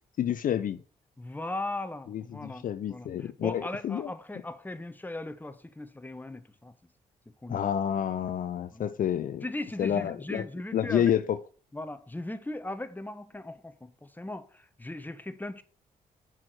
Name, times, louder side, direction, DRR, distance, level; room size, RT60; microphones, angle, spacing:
voice 1, 0.2-0.8 2.1-4.1 7.5-9.4 9.8-10.4 10.7-11.4, left 9 dB, 60° left, 0.5 m, -29 dB
voice 2, 1.2-6.7 7.4-7.7 8.7-9.0 9.4-11.1 11.7-15.6, left 2 dB, 10° left, 1.0 m, -38 dB
6.1 x 4.6 x 6.1 m
supercardioid pair, 50°, 16 cm